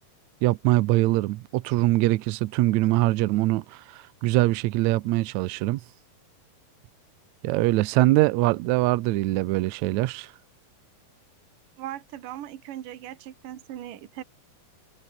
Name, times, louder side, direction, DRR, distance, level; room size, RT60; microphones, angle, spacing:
voice 1, 0.4-5.8 7.4-10.3, right 18 dB, 90° right, 1.6 m, -23 dB
voice 2, 11.8-14.2, right 12 dB, 70° right, 3.1 m, -39 dB
omnidirectional pair, 4.1 m